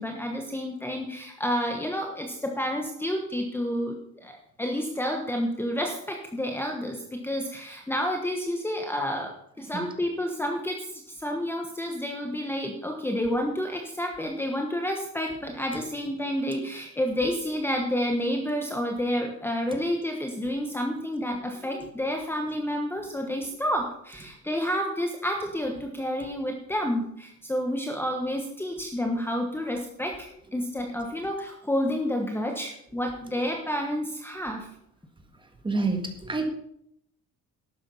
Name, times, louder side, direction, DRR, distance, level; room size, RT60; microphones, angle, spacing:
voice 1, 0.0-4.3 4.6-34.7, equal, 5° left, 2 dB, 1.2 m, -30 dB
voice 2, 35.6-36.5, right 3 dB, 15° right, 5 dB, 1.8 m, -28 dB
12.0 x 8.9 x 5.5 m, 0.73 s
cardioid pair, 145°, 32 cm